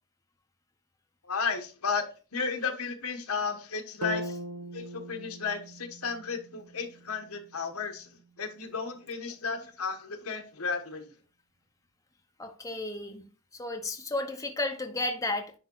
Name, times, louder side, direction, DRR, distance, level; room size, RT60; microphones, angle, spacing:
voice 1, 1.3-2.0 2.3-4.2 4.7-8.1 8.4-11.1, left 5 dB, 75° left, 1.2 m, -33 dB
sound 1, 4.0-8.1, equal, 80° right, 0.8 m, -40 dB
voice 2, 12.4-13.2 13.6-15.5, left 2 dB, 15° left, 0.7 m, -33 dB
10.0 x 3.6 x 3.8 m
head